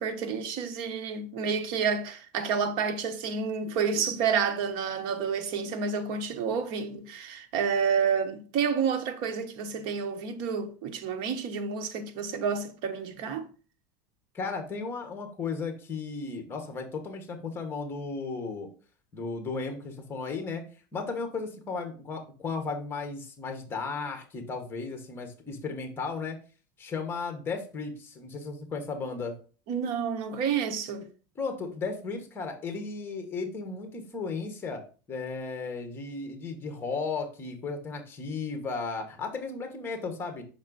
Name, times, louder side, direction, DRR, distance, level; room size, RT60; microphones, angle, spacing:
voice 1, 0.0-13.5 29.7-31.1, right 6 dB, 55° right, 0.9 m, -29 dB
voice 2, 14.3-18.7 19.1-20.6 20.9-26.4 26.8-29.3 31.3-34.8 35.1-40.4, left 4 dB, 20° left, 1.3 m, -35 dB
5.9 x 4.2 x 4.0 m
supercardioid pair, 140°, 10 cm